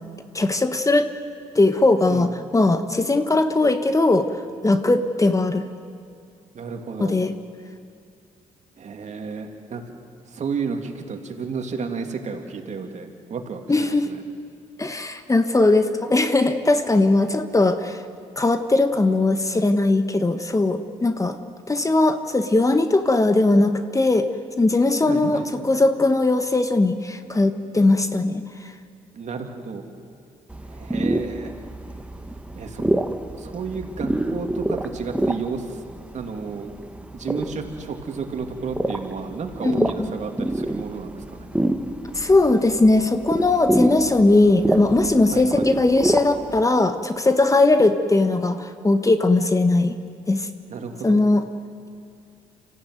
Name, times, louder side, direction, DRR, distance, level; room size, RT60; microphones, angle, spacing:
voice 1, 0.3-1.1 1.5-4.3 4.6-5.7 7.0-7.3 13.7-14.1 14.8-18.0 18.4-21.4 21.7-24.3 24.6-28.4 39.6-40.1 42.1-49.9 50.3-50.5 51.0-51.4, left 2 dB, 25° left, 8 dB, 1.4 m, -19 dB
voice 2, 6.5-7.2 8.8-9.8 10.3-14.2 25.0-25.5 29.1-29.8 30.6-31.6 32.5-32.8 33.4-35.8 36.1-36.7 37.1-41.5 45.3-45.7 50.7-51.2, right 5 dB, 55° right, 4 dB, 2.7 m, -32 dB
sound 1, 30.5-46.6, right 1 dB, 10° right, 1.6 m, -27 dB
26.0 x 15.5 x 9.4 m, 2.5 s
supercardioid pair, 65°, 14 cm